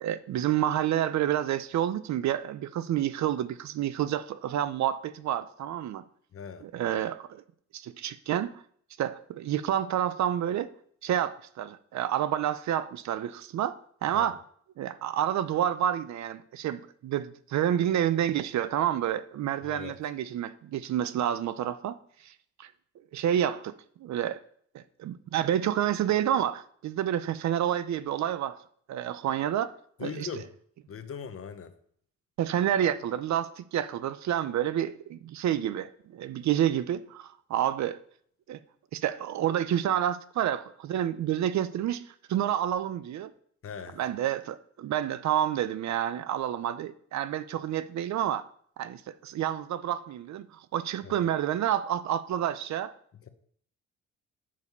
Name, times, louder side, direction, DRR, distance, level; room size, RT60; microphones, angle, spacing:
voice 1, 0.0-6.0 6.6-7.4 7.7-8.6 9.0-10.7 11.0-13.7 14.0-14.4 14.8-22.0 22.2-22.3 22.6-22.7 23.1-23.7 24.0-24.4 24.7-28.6 28.9-29.7 30.0-30.3 32.4-38.0 38.5-38.6 38.9-43.3 44.0-48.5 48.8-52.9, right 11 dB, 65° right, 0.6 m, -29 dB
voice 2, 6.3-6.7 14.1-14.3 19.6-19.9 30.0-30.5 30.9-31.7 43.6-44.0 51.0-51.2, left 7 dB, 45° left, 1.0 m, -39 dB
7.5 x 6.3 x 5.4 m
cardioid pair, 90°, 30 cm